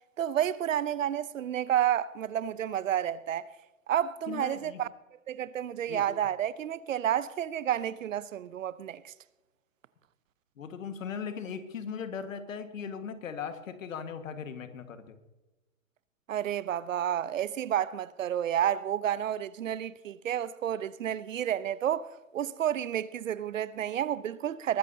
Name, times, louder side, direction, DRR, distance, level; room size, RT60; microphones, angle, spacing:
voice 1, 0.2-3.5 3.9-4.9 5.3-9.1 16.3-24.8, right 10 dB, 65° right, 0.8 m, -30 dB
voice 2, 4.3-4.8 5.9-6.0 10.6-15.2, left 6 dB, 70° left, 1.8 m, -38 dB
22.0 x 13.5 x 2.8 m
hypercardioid pair, 145°, 41 cm